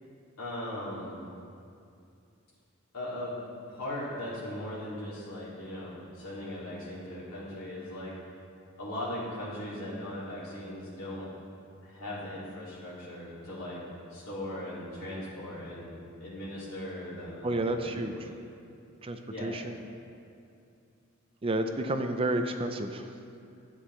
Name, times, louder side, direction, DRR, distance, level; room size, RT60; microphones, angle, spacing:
voice 1, 0.4-1.1 2.9-3.3 3.7-8.2 8.8-11.3 11.8-13.8 14.1-17.6 18.0-18.3 19.3-19.5, left 1 dB, 90° left, -9 dB, 2.4 m, -39 dB
voice 2, 17.4-18.1 19.0-19.8 21.4-23.1, right 2 dB, 25° right, 6 dB, 0.5 m, -30 dB
11.0 x 8.5 x 3.2 m, 2.5 s
head